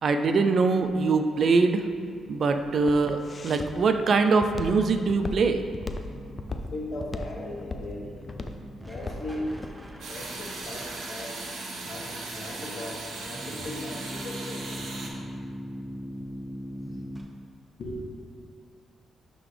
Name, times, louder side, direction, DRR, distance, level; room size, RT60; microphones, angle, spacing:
voice 1, 0.0-1.8 2.3-5.6, right 4 dB, 50° right, 6 dB, 0.4 m, -23 dB
Walk footsteps, 1.6-9.8, left 3 dB, 35° left, 0.4 m, -37 dB
sound 1, 6.1-17.2, equal, 15° right, 0.8 m, -41 dB
voice 2, 6.6-8.3 8.8-9.6 9.9-11.4 11.9-14.9 16.9-17.0 17.8-18.0, left 1 dB, 55° left, -2 dB, 1.3 m, -38 dB
sound 2, 10.0-15.1, right 3 dB, 85° right, 1.1 m, -38 dB
10.5 x 3.8 x 3.3 m, 2.1 s
cardioid pair, 125°, 0 cm